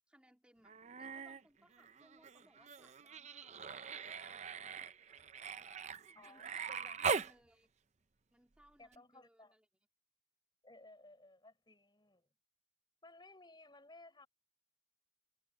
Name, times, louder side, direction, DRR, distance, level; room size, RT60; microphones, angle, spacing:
voice 1, 0.1-5.7 6.1-7.7 8.3-9.7, equal, 5° right, 3.2 m, -68 dB
Human voice, 0.6-1.4 1.7-7.3 8.9-9.0, right 5 dB, 35° right, 0.6 m, -41 dB
voice 2, 6.1-7.2 8.8-9.5 10.6-12.3 13.0-14.3, left 2 dB, 20° left, 5.4 m, -59 dB
head